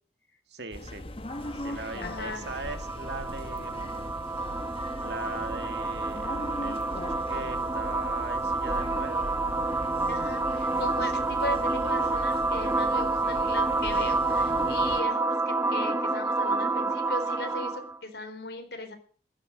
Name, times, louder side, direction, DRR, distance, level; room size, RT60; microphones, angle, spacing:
voice 1, 0.5-1.0 1.5-4.2 5.0-9.5, right 2 dB, 65° right, 8 dB, 2.1 m, -40 dB
sound 1, 0.7-15.0, left 1 dB, 30° left, 1.2 m, -40 dB
sound 2, 1.3-18.0, right 3 dB, 15° right, 0.8 m, -29 dB
voice 2, 1.7-2.4 10.1-19.0, left 2 dB, 60° left, 5 dB, 4.0 m, -38 dB
15.5 x 12.0 x 6.5 m, 0.43 s
head